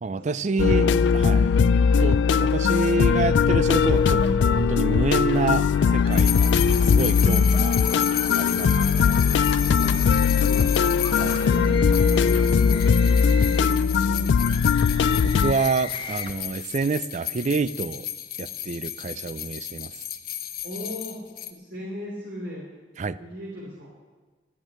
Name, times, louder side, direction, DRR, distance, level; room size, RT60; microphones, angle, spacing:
voice 1, 0.0-0.9 1.1-1.6 2.0-7.8 8.3-9.3 11.1-11.5 15.2-18.1 18.4-19.9 23.0-23.2, right 3 dB, 40° right, 16 dB, 0.4 m, -28 dB
voice 2, 0.5-1.4 1.9-2.0 9.8-9.9 10.2-10.9 11.4-14.9 20.6-21.2 21.5-22.6 23.0-23.9, equal, 75° right, -4 dB, 3.1 m, -37 dB
sound 1, 0.6-15.5, left 6 dB, 85° left, 0.3 m, -20 dB
sound 2, 3.9-4.3 5.3-6.9 7.4-13.8 14.4-16.3, left 4 dB, 30° left, 0.9 m, -38 dB
sound 3, 6.1-21.5, left 12 dB, 55° left, 0.9 m, -32 dB
12.5 x 9.1 x 8.6 m, 1.3 s
head